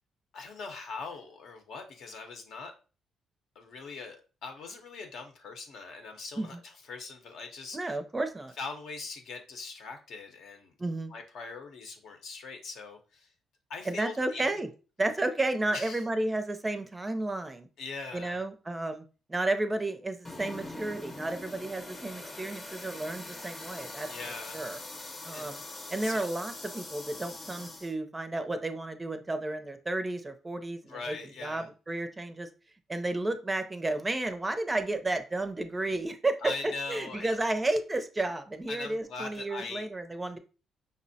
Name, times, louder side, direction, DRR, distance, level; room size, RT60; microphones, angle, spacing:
voice 1, 0.3-2.7 3.5-8.0 8.6-10.7 11.1-13.3 13.7-14.4 15.7-16.0 17.8-18.4 24.1-24.6 25.3-25.5 26.0-26.3 30.8-31.7 36.4-37.4 38.7-39.9, left 4 dB, 75° left, 4 dB, 0.8 m, -41 dB
voice 2, 7.7-8.5 10.8-11.1 13.9-14.7 15.0-17.7 18.1-19.0 19.3-24.1 24.5-24.8 25.2-25.6 25.9-31.1 31.4-32.5 32.9-36.3 36.6-40.4, right 2 dB, 20° right, 9 dB, 0.4 m, -32 dB
sound 1, 20.2-27.9, left 2 dB, 30° left, 0.7 m, -43 dB
5.2 x 2.0 x 2.6 m, 0.35 s
cardioid pair, 90°, 0 cm